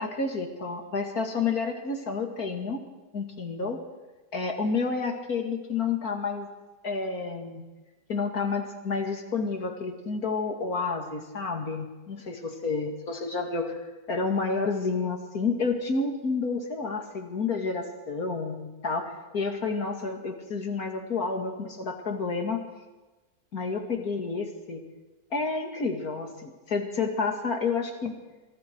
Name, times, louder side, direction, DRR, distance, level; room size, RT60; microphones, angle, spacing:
voice 1, 0.0-2.8 3.1-3.8 4.3-6.5 6.8-7.6 8.1-13.8 14.1-22.6 23.5-24.8 25.3-28.1, left 4 dB, 60° left, 4 dB, 2.9 m, -30 dB
26.5 x 26.0 x 4.7 m, 1.2 s
omnidirectional pair, 1.8 m